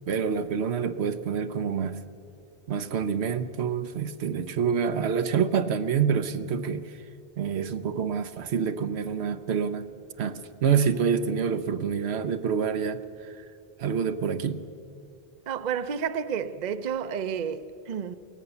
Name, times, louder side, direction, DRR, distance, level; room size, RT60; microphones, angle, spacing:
voice 1, 0.1-2.0 2.7-7.0 7.4-9.8 10.2-13.4 13.8-14.6, right 7 dB, 80° right, 1.1 m, -27 dB
voice 2, 15.5-18.2, right 7 dB, 50° right, 0.7 m, -31 dB
23.0 x 17.5 x 6.9 m
omnidirectional pair, 1.1 m